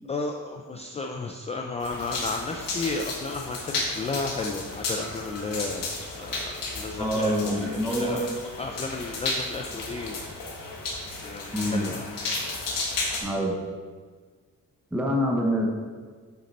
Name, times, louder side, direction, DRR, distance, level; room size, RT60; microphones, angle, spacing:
voice 1, 0.1-5.9 6.2-8.3 8.6-10.2 11.1-12.1, left 3 dB, 20° left, 2 dB, 0.3 m, -33 dB
sound 1, 1.8-13.2, left 3 dB, 80° left, 1.7 m, -33 dB
voice 2, 7.0-8.3 11.5-11.8 13.2-13.6 14.9-15.7, equal, 5° right, -1 dB, 0.8 m, -26 dB
6.6 x 6.5 x 4.2 m, 1.5 s
wide cardioid pair, 175°, 32 cm